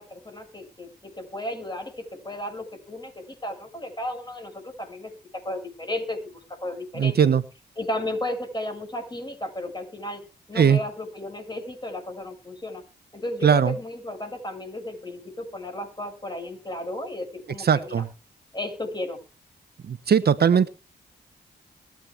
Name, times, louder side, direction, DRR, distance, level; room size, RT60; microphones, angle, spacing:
voice 1, 0.0-5.1 5.4-7.2 7.8-10.2 10.5-12.8 13.1-17.9 18.5-19.2, left 1 dB, 25° left, 5 dB, 6.7 m, -34 dB
voice 2, 7.0-7.4 10.5-10.8 13.4-13.8 17.6-18.1 19.9-20.7, right 7 dB, 60° right, 14 dB, 1.0 m, -19 dB
22.0 x 8.9 x 3.6 m, 0.32 s
cardioid pair, 55°, 18 cm